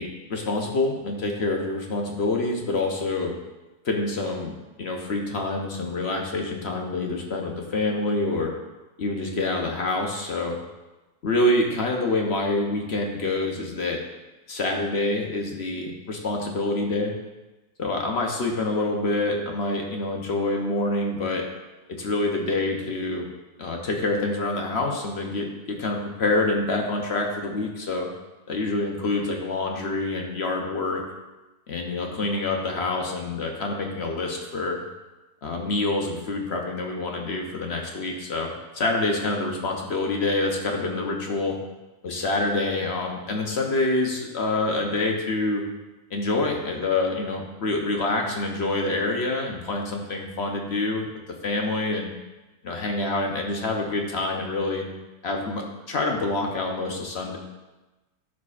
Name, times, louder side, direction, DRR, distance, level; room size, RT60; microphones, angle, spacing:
voice 1, 0.0-3.3 3.8-8.5 9.0-10.6 11.2-14.0 14.5-17.1 17.8-21.4 21.9-23.3 23.6-28.1 28.5-31.0 31.7-34.8 35.4-41.6 42.0-45.6 46.1-51.1 51.4-52.1 52.6-54.9 55.2-55.6 55.9-57.4, left 2 dB, 50° left, 1 dB, 0.9 m, -26 dB
12.5 x 4.9 x 2.4 m, 1.1 s
omnidirectional pair, 1.7 m